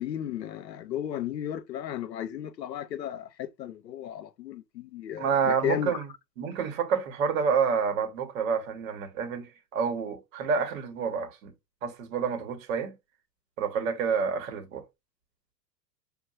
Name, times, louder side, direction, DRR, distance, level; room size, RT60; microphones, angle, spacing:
voice 1, 0.0-6.0, left 10 dB, 80° left, 0.7 m, -34 dB
voice 2, 5.2-6.1 6.4-11.5 11.8-13.0 13.6-14.8, right 6 dB, 50° right, 1.3 m, -28 dB
5.3 x 2.6 x 2.3 m
figure-of-eight pair, 100°, 50 cm